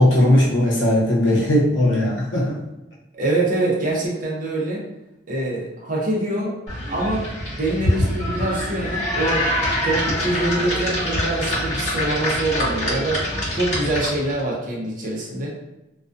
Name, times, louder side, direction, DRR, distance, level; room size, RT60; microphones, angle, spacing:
voice 1, 0.0-2.6, left 1 dB, 85° left, -5 dB, 0.7 m, -18 dB
voice 2, 3.1-4.8 5.3-6.6 6.9-9.4 9.8-13.2 13.5-15.5, right 2 dB, 45° right, -3 dB, 0.7 m, -24 dB
sound 1, 6.7-14.4, left 1 dB, 40° left, 1.0 m, -25 dB
2.3 x 2.3 x 2.5 m, 0.93 s
head